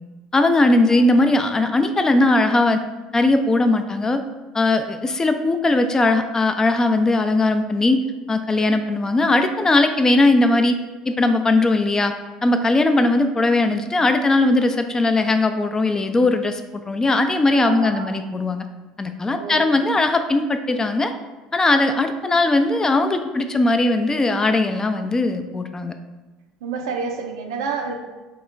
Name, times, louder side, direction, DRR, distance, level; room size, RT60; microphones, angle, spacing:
voice 1, 0.3-2.8 3.1-4.2 4.5-8.0 8.3-10.8 11.1-12.1 12.4-16.6 16.9-18.6 19.0-21.1 21.5-25.9, left 2 dB, 20° left, 7 dB, 0.3 m, -19 dB
voice 2, 17.7-18.2 19.3-19.9 26.6-28.0, right 5 dB, 75° right, 4 dB, 0.5 m, -29 dB
4.5 x 2.0 x 3.7 m, 1.2 s
hypercardioid pair, 65°, 3 cm